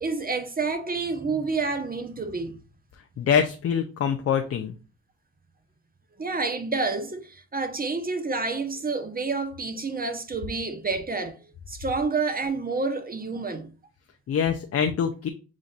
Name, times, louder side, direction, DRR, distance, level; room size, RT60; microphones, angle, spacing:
voice 1, 0.0-2.6 6.2-11.4 11.7-13.7, right 4 dB, 25° right, 0.9 m, -29 dB
voice 2, 3.2-4.7 14.3-15.3, left 7 dB, 45° left, 0.6 m, -24 dB
7.3 x 2.5 x 2.5 m
supercardioid pair, 60°, 34 cm